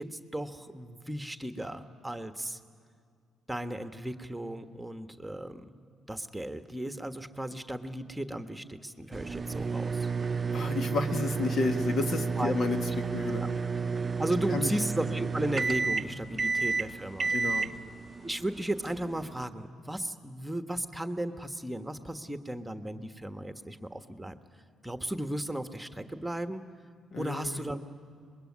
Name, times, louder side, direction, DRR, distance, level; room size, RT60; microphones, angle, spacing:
voice 1, 0.0-2.6 3.5-5.7 6.1-10.1 12.4-12.5 13.4-13.5 14.2-17.3 18.2-24.3 24.8-26.6 27.2-27.8, right 1 dB, 10° right, 8 dB, 1.4 m, -35 dB
sound 1, 9.1-19.4, right 4 dB, 35° right, 0.6 m, -31 dB
voice 2, 10.5-12.8 13.1-13.4 14.5-14.7 16.3-16.4 17.3-17.7 27.1-27.6, left 3 dB, 55° left, 6 dB, 1.8 m, -31 dB
24.5 x 21.5 x 9.7 m, 2.3 s
supercardioid pair, 60°, 0 cm